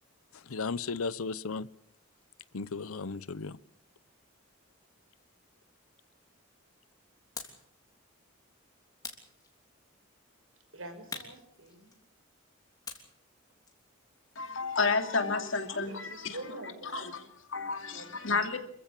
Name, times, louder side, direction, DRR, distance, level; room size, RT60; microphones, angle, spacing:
voice 1, 0.3-1.7 2.5-3.6, left 4 dB, 85° left, 0.8 m, -35 dB
sound 1, 7.4-7.7 9.0-9.9 11.1-12.2 12.8-15.1, left 4 dB, 15° left, 3.3 m, -46 dB
voice 2, 10.7-11.9 15.9-17.2 17.9-18.1, right 2 dB, 75° right, 6.3 m, -45 dB
voice 3, 14.4-18.6, left 4 dB, 65° left, 2.7 m, -32 dB
27.5 x 15.0 x 8.4 m
head